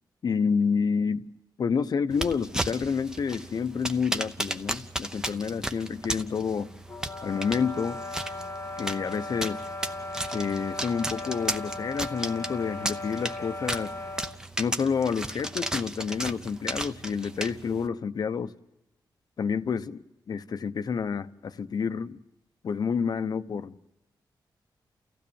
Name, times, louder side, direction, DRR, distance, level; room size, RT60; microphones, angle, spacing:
voice 1, 0.2-1.3 1.6-6.7 7.2-8.0 8.8-9.6 10.3-13.9 14.6-18.5 19.4-22.2 22.6-23.8, left 6 dB, 55° left, 0.8 m, -29 dB
sound 1, 2.1-17.9, right 1 dB, 10° right, 0.8 m, -35 dB
sound 2, 6.9-14.4, left 2 dB, 30° left, 1.1 m, -37 dB
29.5 x 15.5 x 7.1 m
wide cardioid pair, 140°, 8 cm